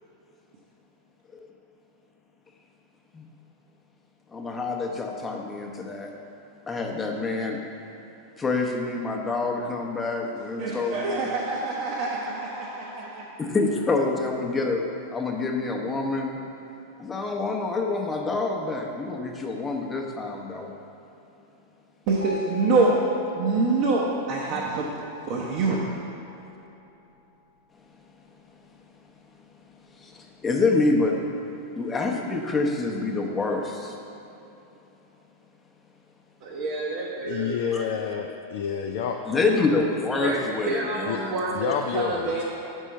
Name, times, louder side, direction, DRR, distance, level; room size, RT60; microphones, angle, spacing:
voice 1, 4.3-6.1 6.7-7.6 8.4-11.2 13.4-16.4 17.0-20.7 24.5-24.6 30.0-31.2 31.7-34.0 37.7-37.8 39.3-41.3, left 3 dB, 15° left, 1 dB, 0.8 m, -27 dB
voice 2, 10.6-13.3 22.1-23.0 23.4-25.8 36.4-37.9 40.2-42.4, right 3 dB, 45° right, -4 dB, 0.8 m, -26 dB
sound 1, 22.2-26.9, left 3 dB, 90° right, 0.5 m, -43 dB
voice 3, 37.2-39.2 41.1-41.2 41.5-42.4, left 7 dB, 55° left, 2 dB, 0.4 m, -29 dB
5.5 x 5.4 x 6.3 m, 3.0 s
figure-of-eight pair, 90°, 0 cm